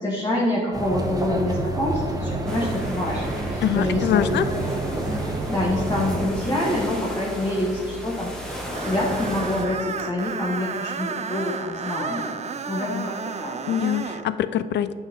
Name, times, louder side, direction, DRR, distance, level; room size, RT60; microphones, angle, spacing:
voice 1, 0.0-4.5 5.5-12.3 12.7-13.6, left 1 dB, 20° left, -4 dB, 1.5 m, -26 dB
sound 1, 0.7-6.3, right 2 dB, 20° right, 1.3 m, -28 dB
sound 2, 2.5-9.6, equal, 5° left, 1.7 m, -34 dB
voice 2, 3.6-4.5 13.7-14.9, left 10 dB, 60° left, 14 dB, 0.5 m, -23 dB
Screech, 8.7-14.3, right 5 dB, 35° right, 0.6 m, -32 dB
9.0 x 5.7 x 4.5 m, 2.2 s
cardioid pair, 90°, 20 cm